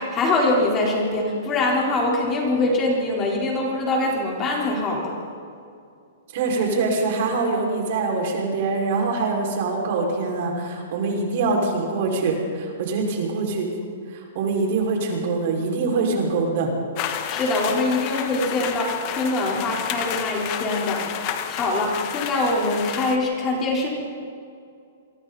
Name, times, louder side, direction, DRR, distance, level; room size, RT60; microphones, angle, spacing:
voice 1, 0.0-5.1 17.3-23.9, left 2 dB, 20° left, -2 dB, 4.3 m, -23 dB
voice 2, 6.3-13.7 14.1-16.7, right 3 dB, 50° right, 0 dB, 5.8 m, -24 dB
sound 1, 17.0-23.2, left 9 dB, 35° left, 1.6 m, -30 dB
28.0 x 24.0 x 4.3 m, 2.4 s
hypercardioid pair, 155°, 0 cm